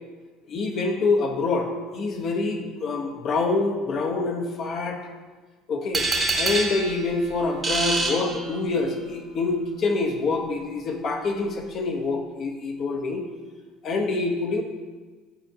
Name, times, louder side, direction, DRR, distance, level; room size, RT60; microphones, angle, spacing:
voice 1, 0.5-5.0 5.7-6.1 6.3-13.2 13.8-14.6, left 3 dB, 50° left, 3 dB, 1.0 m, -26 dB
sound 1, 5.9-9.0, right 3 dB, 30° right, 1.2 m, -27 dB
9.9 x 4.3 x 2.8 m, 1.4 s
supercardioid pair, 90°, 0 cm